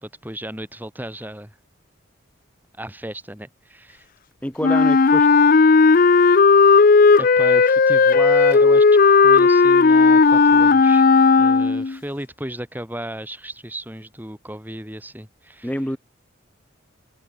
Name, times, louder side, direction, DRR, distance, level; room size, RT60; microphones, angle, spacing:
voice 1, 0.0-1.5 2.8-4.1 7.2-11.1 11.4-15.7, right 1 dB, 10° right, 4.0 m, -34 dB
voice 2, 4.4-5.3 15.6-16.0, equal, 5° left, 3.6 m, -27 dB
Wind instrument woodwind instrument, 4.6-12.0, left 4 dB, 45° left, 0.5 m, -14 dB
head